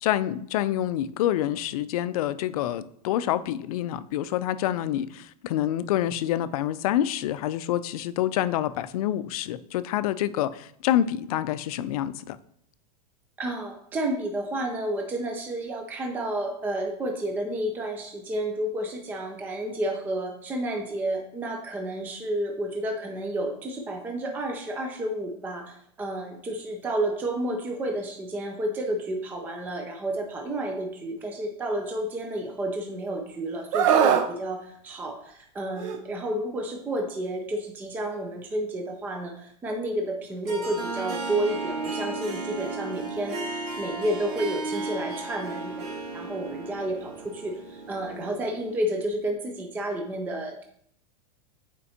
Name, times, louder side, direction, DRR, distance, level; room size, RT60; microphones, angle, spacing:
voice 1, 0.0-12.4, left 12 dB, 60° left, 0.4 m, -27 dB
voice 2, 13.4-45.9 46.1-50.6, right 1 dB, 10° right, 0.4 m, -31 dB
Screaming, 33.7-34.3 35.8-36.0, right 8 dB, 50° right, 0.6 m, -21 dB
Harp, 40.4-48.9, right 3 dB, 70° right, 1.8 m, -34 dB
8.3 x 4.3 x 2.8 m
supercardioid pair, 160°, 21 cm